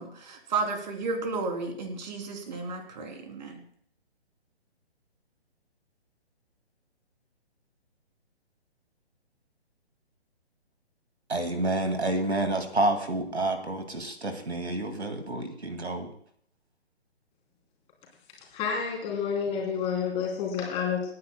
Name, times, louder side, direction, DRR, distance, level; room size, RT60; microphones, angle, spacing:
voice 1, 0.0-3.6, right 3 dB, 40° right, 3.2 m, -33 dB
voice 2, 11.3-16.1, right 2 dB, 75° right, 2.2 m, -29 dB
voice 3, 18.5-21.1, left 6 dB, 15° left, 3.2 m, -29 dB
29.0 x 9.7 x 2.2 m
figure-of-eight pair, 135°, 33 cm